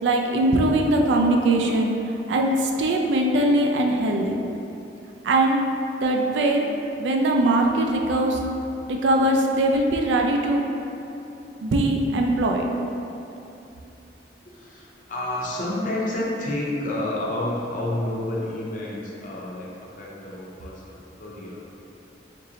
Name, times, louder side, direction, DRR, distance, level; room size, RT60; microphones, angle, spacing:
voice 1, 0.0-1.9 2.3-4.3 5.2-5.6 6.0-6.6 7.0-8.4 8.9-10.6 11.6-12.6, right 1 dB, 75° right, 1 dB, 0.4 m, -21 dB
voice 2, 14.4-21.7, left 1 dB, 45° left, -4 dB, 0.6 m, -30 dB
4.1 x 2.6 x 2.8 m, 2.8 s
head